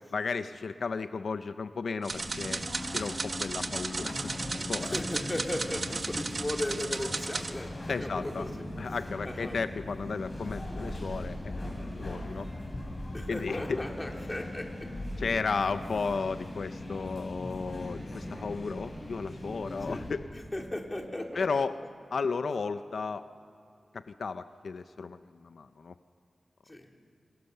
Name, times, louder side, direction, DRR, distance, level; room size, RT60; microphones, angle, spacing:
voice 1, 0.1-2.6 2.9-4.1 4.7-5.0 7.9-8.5 8.8-12.5 13.3-13.8 15.2-20.2 21.3-21.8 22.1-23.2 23.9-25.9, left 4 dB, 85° left, 10 dB, 0.6 m, -34 dB
sound 1, 2.0-7.5, right 3 dB, 60° right, 1.4 m, -35 dB
sound 2, 2.1-20.1, left 1 dB, 45° left, 7.0 m, -39 dB
voice 2, 4.8-8.6 9.2-9.6 13.1-14.9 19.8-20.0 20.3-21.4 26.7-26.9, left 1 dB, 25° left, 1 dB, 3.3 m, -36 dB
27.5 x 23.5 x 6.8 m, 2.5 s
wide cardioid pair, 65°, 0 cm